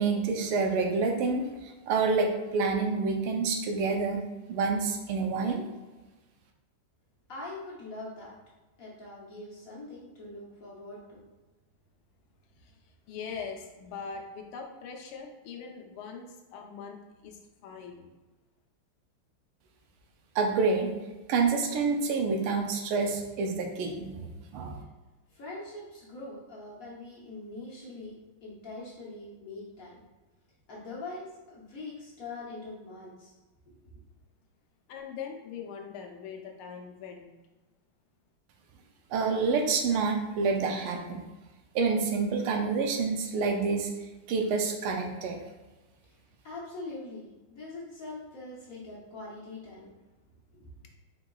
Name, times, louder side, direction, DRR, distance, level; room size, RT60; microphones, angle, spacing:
voice 1, 0.0-1.4 1.9-4.2 4.5-5.6 20.3-20.9 21.3-24.8 39.1-41.2 41.7-43.9 44.3-45.4, right 4 dB, 90° right, 3 dB, 1.6 m, -28 dB
voice 2, 7.3-8.4 8.8-11.2 25.3-29.9 30.7-33.4 33.7-33.9 46.4-49.9 50.5-50.7, left 2 dB, 55° left, -5 dB, 1.0 m, -43 dB
voice 3, 13.1-18.1 34.9-37.3, left 6 dB, 80° left, 2 dB, 1.5 m, -42 dB
4.7 x 3.8 x 2.3 m, 1.2 s
omnidirectional pair, 2.4 m